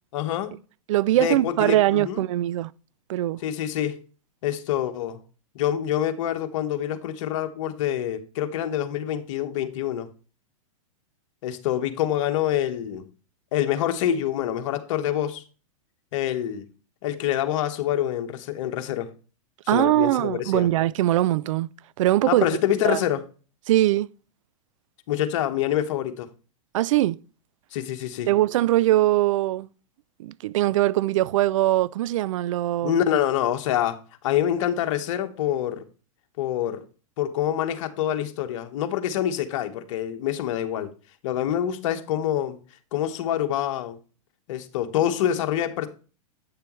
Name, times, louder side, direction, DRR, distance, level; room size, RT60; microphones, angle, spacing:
voice 1, 0.1-0.5 1.2-2.2 3.4-4.0 4.4-5.2 5.5-10.1 11.4-13.1 13.5-15.4 16.1-16.7 17.0-19.1 19.7-20.7 22.3-23.2 25.1-26.3 27.7-28.3 32.8-35.8 36.4-36.8 37.2-40.9 41.2-42.6 42.9-44.0 44.5-45.9, left 11 dB, 60° left, 1.3 m, -26 dB
voice 2, 0.9-2.7 3.1-3.4 19.7-21.7 22.0-22.5 22.8-23.0 23.7-24.1 26.7-27.2 28.3-29.7 30.2-33.0, right 15 dB, 65° right, 0.4 m, -21 dB
9.1 x 6.8 x 3.1 m
hypercardioid pair, 115°, 18 cm